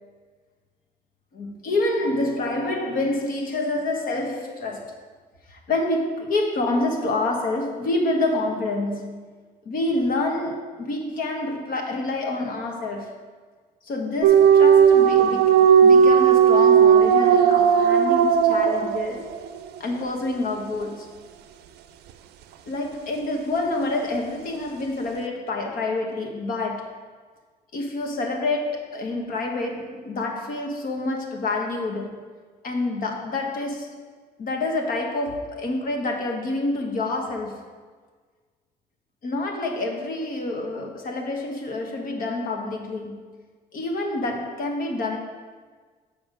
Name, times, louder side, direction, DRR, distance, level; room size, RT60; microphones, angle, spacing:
voice 1, 1.3-5.0 5.5-9.2 9.6-13.2 13.8-19.4 19.8-21.1 22.6-26.9 27.7-32.2 32.6-34.0 34.4-37.6 39.2-43.4 43.7-45.2, left 2 dB, 55° left, 2 dB, 1.4 m, -27 dB
sound 1, 14.2-19.5, right 7 dB, 75° right, 0.5 m, -16 dB
7.3 x 5.2 x 5.1 m, 1.5 s
cardioid pair, 110°, 17 cm